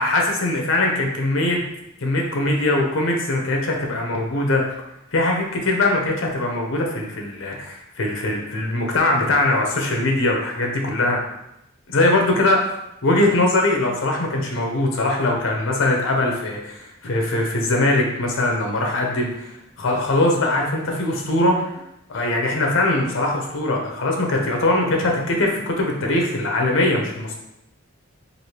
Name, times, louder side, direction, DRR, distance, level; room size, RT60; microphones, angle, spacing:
voice 1, 0.0-1.6 2.0-4.6 5.1-11.2 11.9-12.7 13.0-21.7 22.1-27.3, left 2 dB, 65° left, 1 dB, 0.6 m, -21 dB
3.2 x 2.5 x 2.8 m, 0.82 s
head